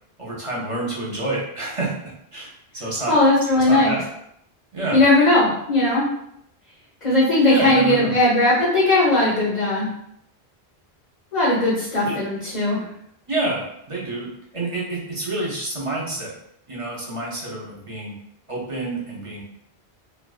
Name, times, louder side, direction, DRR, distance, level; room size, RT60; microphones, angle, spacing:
voice 1, 0.2-1.9 2.3-3.1 3.5-4.0 4.7-5.0 7.4-8.2 12.0-12.2 13.3-14.3 14.5-16.3 16.7-18.1 18.5-19.4, right 2 dB, 35° right, -5 dB, 0.6 m, -28 dB
voice 2, 3.1-3.9 4.9-6.1 7.0-9.9 11.3-12.8, left 2 dB, 45° left, -8 dB, 0.8 m, -18 dB
2.4 x 2.2 x 2.3 m, 0.74 s
omnidirectional pair, 1.1 m